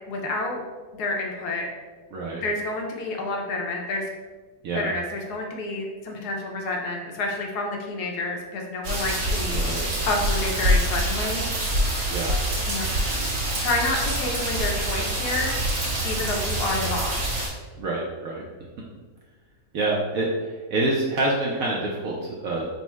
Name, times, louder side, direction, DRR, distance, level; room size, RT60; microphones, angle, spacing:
voice 1, 0.1-0.6 1.0-1.7 2.4-4.1 4.7-9.6 10.1-11.5 12.7-12.8 13.6-15.6 16.0-17.4, left 2 dB, 70° left, 1 dB, 1.1 m, -29 dB
voice 2, 2.1-2.4 4.6-4.9 9.5-9.8 12.1-12.4 17.8-18.5 19.7-22.6, right 2 dB, 70° right, -3 dB, 0.8 m, -27 dB
sound 1, 8.8-17.5, right 1 dB, 55° right, 1.2 m, -25 dB
4.1 x 2.0 x 4.5 m, 1.3 s
omnidirectional pair, 1.9 m